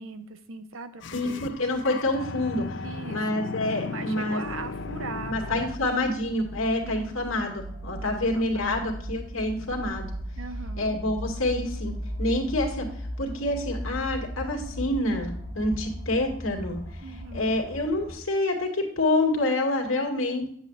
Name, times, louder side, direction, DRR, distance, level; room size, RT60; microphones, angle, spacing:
voice 1, 0.0-1.5 2.8-3.2 3.8-5.7 6.8-7.1 8.3-8.8 10.4-11.0 17.0-17.5, right 3 dB, 75° right, 10 dB, 0.9 m, -39 dB
sound 1, 1.0-6.0, left 4 dB, 60° left, 0.5 m, -36 dB
voice 2, 1.1-2.7 3.1-4.4 5.3-10.1 10.8-11.9 12.2-12.9 13.2-16.8 17.3-20.5, left 2 dB, 80° left, 1 dB, 2.3 m, -27 dB
sound 2, 4.4-18.2, equal, 25° right, 2.2 m, -37 dB
9.8 x 8.1 x 2.4 m, 0.64 s
head